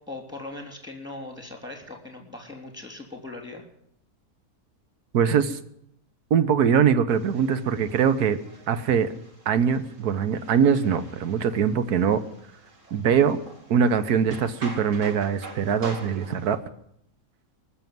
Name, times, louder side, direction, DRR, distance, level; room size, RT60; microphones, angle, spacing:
voice 1, 0.1-3.6 7.7-8.0, left 2 dB, ahead, 3 dB, 3.1 m, -40 dB
voice 2, 5.1-5.6 6.3-8.4 8.7-9.1 9.5-12.2 12.9-13.4 13.7-16.6, right 7 dB, 85° right, 12 dB, 1.5 m, -22 dB
sound 1, 7.1-16.5, right 3 dB, 55° right, 2.8 m, -45 dB
19.5 x 7.1 x 9.2 m, 0.74 s
omnidirectional pair, 1.6 m